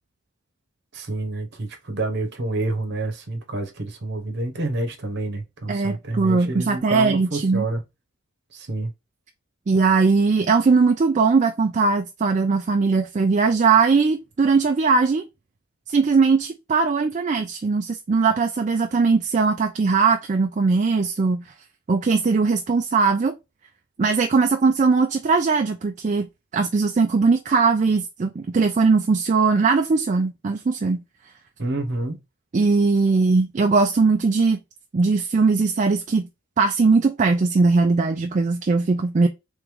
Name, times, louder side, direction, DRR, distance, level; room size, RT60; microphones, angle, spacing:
voice 1, 0.9-7.8 8.5-8.9 31.6-32.2, right 2 dB, 50° right, 1.0 m, -28 dB
voice 2, 5.7-7.6 9.7-15.2 15.9-21.5 21.9-23.3 24.0-26.3 26.5-31.0 32.5-34.6 34.9-36.3 36.6-39.3, right 4 dB, 35° right, 0.3 m, -20 dB
3.5 x 3.3 x 3.5 m
head